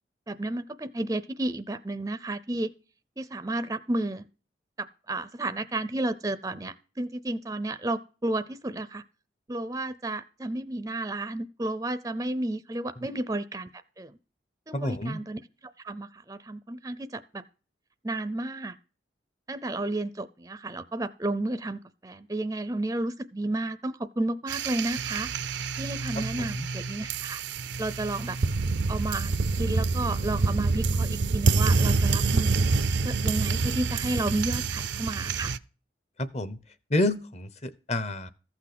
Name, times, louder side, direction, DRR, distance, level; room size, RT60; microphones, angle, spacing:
voice 1, 0.3-2.7 3.2-4.2 4.8-9.0 9.5-13.7 14.0-14.2 14.7-15.4 15.8-17.4 18.0-18.8 19.5-25.3 25.8-27.4 27.8-28.4 28.9-32.6 33.0-35.5, right 2 dB, 20° right, 12 dB, 0.5 m, -32 dB
voice 2, 14.7-15.2 26.4-26.7 36.2-36.6 36.9-38.3, left 1 dB, 35° left, 15 dB, 0.9 m, -29 dB
sound 1, 24.5-35.6, right 4 dB, 75° right, 0.6 m, -27 dB
14.5 x 6.0 x 6.0 m, 0.36 s
head